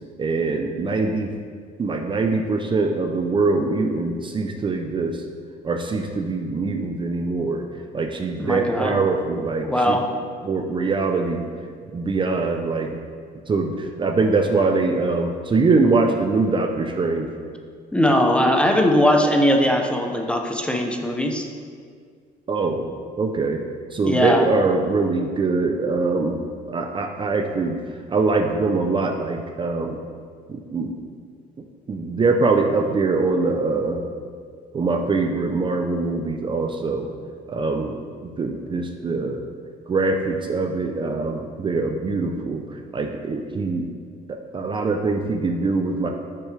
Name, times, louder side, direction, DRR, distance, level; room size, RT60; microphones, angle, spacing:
voice 1, 0.2-1.3 1.8-5.2 5.6-7.6 7.9-10.0 10.4-11.4 11.9-13.0 13.5-17.3 22.5-22.9 23.2-23.6 23.9-26.4 26.7-27.8 28.1-30.0 30.5-30.9 31.9-34.0 34.7-37.1 37.5-39.4 39.9-43.9 44.3-46.1, right 3 dB, 30° right, 4 dB, 0.6 m, -23 dB
voice 2, 8.4-8.9 9.6-10.1 17.9-21.5 24.0-24.4, left 1 dB, 5° left, 2 dB, 0.8 m, -20 dB
10.0 x 6.2 x 3.4 m, 2.1 s
cardioid pair, 110°, 17 cm